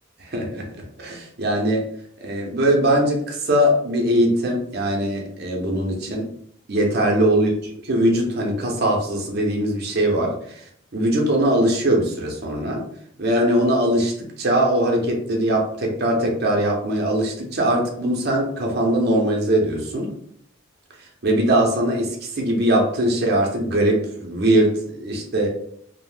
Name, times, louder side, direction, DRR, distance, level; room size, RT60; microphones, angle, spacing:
voice 1, 0.2-0.7 1.0-1.8 2.2-6.3 6.7-7.5 7.8-10.6 10.9-12.8 13.2-20.1 21.2-25.5, right 1 dB, 50° right, 0 dB, 0.5 m, -21 dB
2.4 x 2.0 x 3.2 m, 0.65 s
head